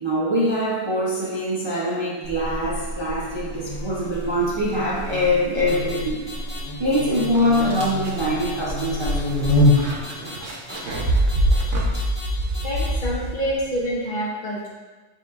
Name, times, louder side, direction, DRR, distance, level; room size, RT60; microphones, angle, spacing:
voice 1, 0.0-6.3 6.8-9.5, equal, 35° right, -7 dB, 0.4 m, -23 dB
Buzz, 2.2-10.0, left 1 dB, 85° left, 1.3 m, -26 dB
sound 1, 5.7-6.0 6.3-6.6 6.9-7.2 7.5-7.8 8.2-8.5 8.8-9.1 9.4-9.8 10.0-10.4 10.7-11.0 11.3-11.6 11.9-12.3 12.5-12.9, left 3 dB, 25° left, 1.4 m, -38 dB
sound 2, 6.8-6.9 7.3-13.7, right 1 dB, 80° right, 1.0 m, -25 dB
voice 2, 12.6-14.7, right 1 dB, 50° left, -5 dB, 0.6 m, -27 dB
7.4 x 2.7 x 2.4 m, 1.3 s
omnidirectional pair, 1.3 m